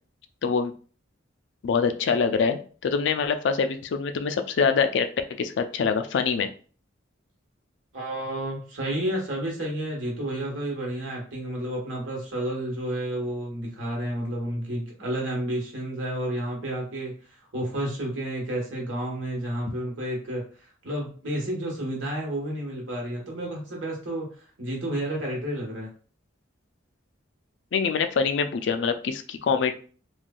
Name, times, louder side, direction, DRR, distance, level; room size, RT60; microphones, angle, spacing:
voice 1, 0.4-0.7 1.6-5.1 5.4-6.5 27.7-29.7, left 5 dB, 65° left, 8 dB, 0.4 m, -24 dB
voice 2, 7.9-24.3 24.6-25.9, right 1 dB, 75° right, -2 dB, 1.3 m, -31 dB
3.2 x 2.5 x 2.2 m, 0.40 s
head